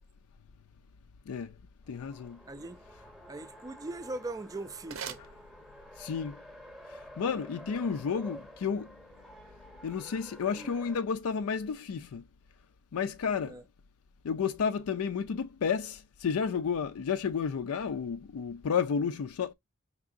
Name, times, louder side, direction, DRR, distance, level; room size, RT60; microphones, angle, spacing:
Race car auto racing, 1.8-11.1, equal, ahead, 0.8 m, -50 dB
voice 1, 1.9-2.4 6.0-6.4 7.2-8.9 9.8-12.2 12.9-13.6 14.2-19.5, left 6 dB, 85° left, 0.4 m, -31 dB
voice 2, 2.5-2.8 3.3-5.2 10.6-10.7 13.5-13.6, right 2 dB, 15° right, 0.3 m, -40 dB
sound 1, 4.7-6.1, right 7 dB, 70° right, 0.6 m, -45 dB
4.7 x 3.5 x 2.5 m
head